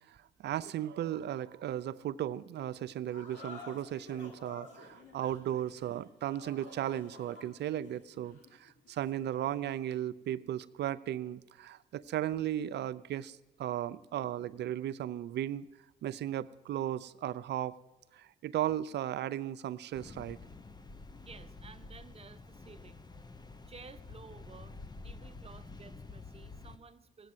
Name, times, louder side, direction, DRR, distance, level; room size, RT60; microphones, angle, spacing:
voice 1, 0.1-15.7 16.0-17.8 18.1-20.4, right 11 dB, 65° right, 16 dB, 0.5 m, -36 dB
sound 1, 3.1-9.8, left 3 dB, 75° left, 2.7 m, -52 dB
sound 2, 19.9-26.8, left 3 dB, 20° left, 1.0 m, -49 dB
voice 2, 21.2-23.0 23.7-24.8 25.0-27.3, right 5 dB, 30° right, 10 dB, 1.1 m, -54 dB
18.0 x 8.2 x 7.9 m, 1.1 s
supercardioid pair, 65°, 19 cm